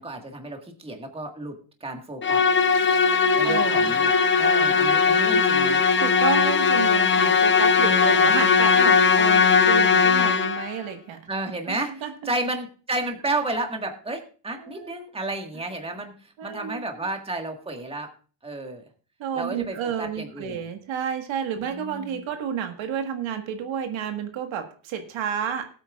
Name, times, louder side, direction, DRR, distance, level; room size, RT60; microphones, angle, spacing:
voice 1, 0.0-2.4 3.3-5.8 7.8-8.3 11.3-18.1 18.4-18.9 19.3-20.6 21.6-22.3, right 2 dB, 10° right, 4 dB, 1.6 m, -32 dB
Musical instrument, 2.2-10.7, left 5 dB, 25° left, 0.8 m, -19 dB
voice 2, 3.4-3.9 6.0-11.2 11.7-12.3 14.6-14.9 16.4-16.8 19.2-25.7, right 8 dB, 80° right, 6 dB, 1.6 m, -31 dB
18.5 x 8.7 x 2.4 m, 0.39 s
cardioid pair, 125°, 46 cm